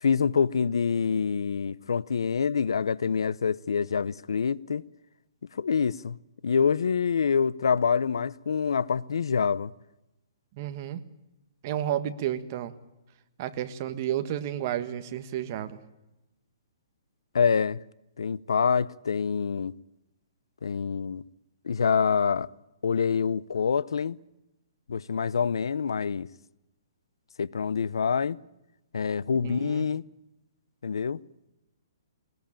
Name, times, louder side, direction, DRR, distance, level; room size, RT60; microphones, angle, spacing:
voice 1, 0.0-4.8 5.6-6.2 6.4-9.7 17.3-17.8 18.2-19.7 20.6-21.2 21.6-22.5 22.8-24.2 24.9-26.3 27.4-28.4 28.9-30.0 30.8-31.2, left 6 dB, 90° left, 0.7 m, -26 dB
voice 2, 10.6-11.0 11.6-12.7 13.4-15.8 29.4-29.9, right 11 dB, 35° right, 1.6 m, -31 dB
21.5 x 20.5 x 8.9 m
hypercardioid pair, 165°, 2 cm